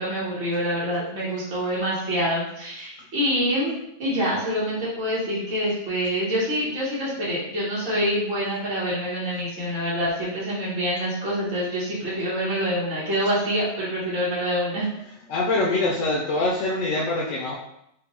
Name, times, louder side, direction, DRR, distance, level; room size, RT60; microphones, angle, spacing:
voice 1, 0.0-14.9, equal, 90° right, -8 dB, 1.5 m, -26 dB
voice 2, 15.3-17.6, left 2 dB, 80° left, -3 dB, 1.0 m, -24 dB
5.1 x 2.1 x 2.9 m, 0.77 s
omnidirectional pair, 1.3 m